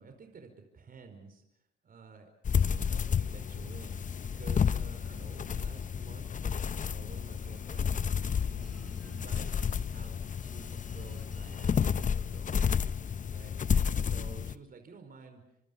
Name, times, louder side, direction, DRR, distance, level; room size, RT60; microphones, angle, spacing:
voice 1, 0.0-1.4 1.8-12.9 13.3-15.4, right 5 dB, 45° right, 5 dB, 5.0 m, -51 dB
sound 1, 2.4-14.6, left 7 dB, 40° left, 0.9 m, -31 dB
sound 2, 7.4-14.4, equal, ahead, 3.9 m, -60 dB
28.5 x 27.0 x 5.5 m, 0.78 s
cardioid pair, 90°, 20 cm